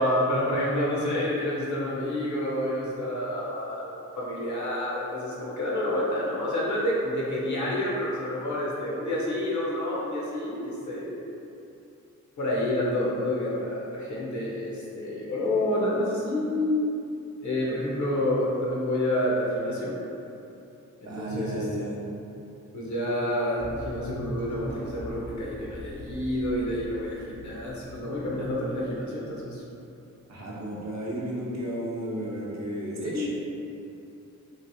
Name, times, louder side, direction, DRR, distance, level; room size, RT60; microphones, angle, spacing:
voice 1, 0.0-11.1 12.4-17.0 17.4-20.0 21.0-21.8 22.7-29.6 33.0-33.3, left 1 dB, 60° left, -5 dB, 0.8 m, -28 dB
voice 2, 21.0-22.0 30.3-33.3, right 1 dB, 55° right, -5 dB, 0.7 m, -33 dB
sound 1, 23.6-29.6, left 1 dB, 5° left, 0.4 m, -42 dB
3.1 x 2.5 x 2.6 m, 2.8 s
cardioid pair, 75°, 33 cm